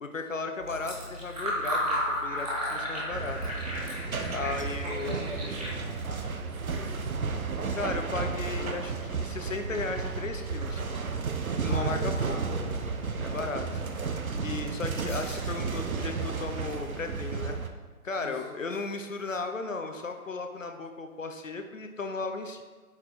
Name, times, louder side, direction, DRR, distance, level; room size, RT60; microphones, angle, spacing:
voice 1, 0.0-3.4 4.3-5.2 7.7-10.9 11.6-12.4 13.2-13.7 14.4-17.6 18.0-22.6, left 3 dB, 60° left, 5 dB, 0.7 m, -35 dB
Fill (with liquid), 0.6-6.8, equal, 25° right, 1.6 m, -34 dB
sound 1, 3.1-17.7, right 4 dB, 65° right, 0.8 m, -33 dB
voice 2, 4.5-7.2 11.7-13.8 18.2-18.5, right 1 dB, 45° right, -5 dB, 2.1 m, -42 dB
sound 2, 15.0-15.5 16.0-16.1 16.5-16.9 18.2-19.4 19.6-19.8 20.1-20.4, equal, 10° left, 0.9 m, -50 dB
8.5 x 4.7 x 3.1 m, 1.4 s
figure-of-eight pair, 165°, 45 cm